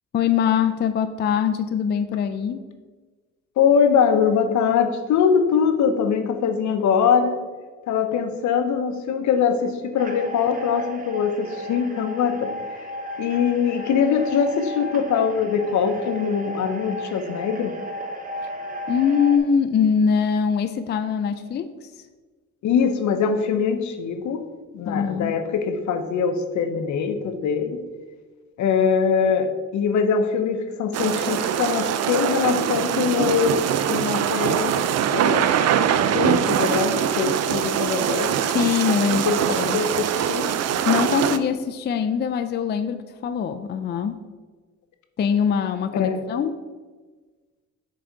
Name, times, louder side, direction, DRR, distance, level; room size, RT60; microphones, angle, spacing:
voice 1, 0.1-2.7 18.9-21.7 24.9-25.3 38.5-39.8 40.6-44.2 45.2-46.5, left 7 dB, 35° left, 9 dB, 0.4 m, -23 dB
voice 2, 3.6-7.4 7.9-12.9 13.2-17.7 22.6-24.4 24.7-27.8 28.6-33.6 33.9-35.5 35.8-38.4 39.1-40.5 45.9-46.2, left 6 dB, 70° left, 7 dB, 0.8 m, -22 dB
sound 1, 10.0-19.4, equal, 30° right, 0.9 m, -35 dB
sound 2, 30.9-41.4, right 9 dB, 55° right, 0.5 m, -23 dB
6.5 x 3.9 x 4.6 m, 1.4 s
cardioid pair, 90°, 30 cm